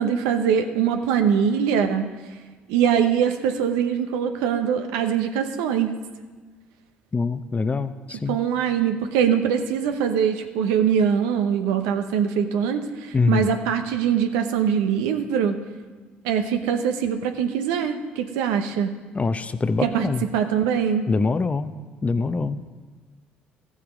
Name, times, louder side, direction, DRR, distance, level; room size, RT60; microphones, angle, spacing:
voice 1, 0.0-2.1 2.7-5.9 8.3-15.6 16.2-18.9 19.8-20.1 20.3-21.1, right 8 dB, 80° right, 7 dB, 0.8 m, -22 dB
voice 2, 7.1-8.4 13.1-13.5 19.1-20.2 21.1-21.7 22.0-22.8, left 4 dB, 30° left, 12 dB, 0.7 m, -24 dB
14.0 x 7.4 x 5.2 m, 1.3 s
hypercardioid pair, 60°, 5 cm